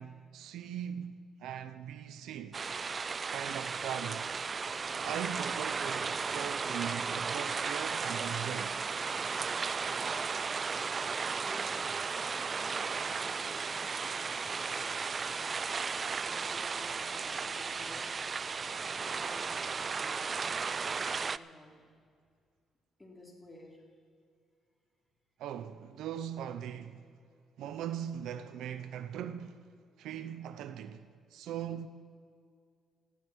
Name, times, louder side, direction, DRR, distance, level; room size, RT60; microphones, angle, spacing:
voice 1, 0.0-2.6 3.3-4.8 5.0-8.8 25.4-27.0 27.6-29.6 30.0-31.9, right 9 dB, 85° right, 0.8 m, -40 dB
sound 1, 2.5-21.4, right 5 dB, 40° right, 0.4 m, -35 dB
voice 2, 10.2-21.9 23.0-23.9, left 1 dB, 15° left, 4.1 m, -55 dB
19.0 x 14.5 x 4.7 m
cardioid pair, 90°, 0 cm